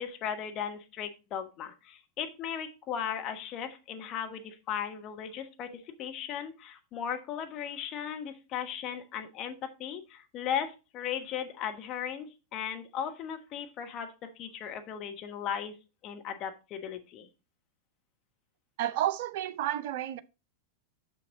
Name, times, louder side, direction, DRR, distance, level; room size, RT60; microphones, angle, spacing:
voice 1, 0.0-12.3 12.5-14.1 14.4-15.7 16.0-17.3, left 8 dB, 35° left, 1.2 m, -37 dB
voice 2, 18.8-20.2, right 12 dB, 50° right, 0.5 m, -31 dB
6.5 x 6.2 x 3.9 m
figure-of-eight pair, 90°, 0 cm